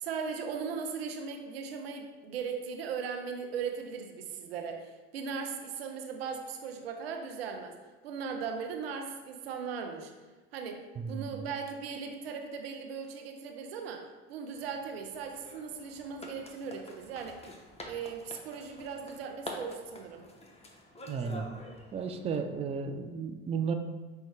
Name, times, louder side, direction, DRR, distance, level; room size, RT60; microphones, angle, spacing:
voice 1, 0.0-7.8 8.0-10.1 10.5-10.8 11.1-17.4 17.8-20.3, right 6 dB, 90° right, 4 dB, 0.5 m, -38 dB
voice 2, 11.0-11.4 21.1-21.5 21.9-23.7, right 5 dB, 20° right, 6 dB, 0.4 m, -34 dB
sound 1, 14.5-22.3, left 1 dB, 20° left, 0.7 m, -48 dB
5.4 x 2.2 x 3.2 m, 1.3 s
hypercardioid pair, 70°, 30 cm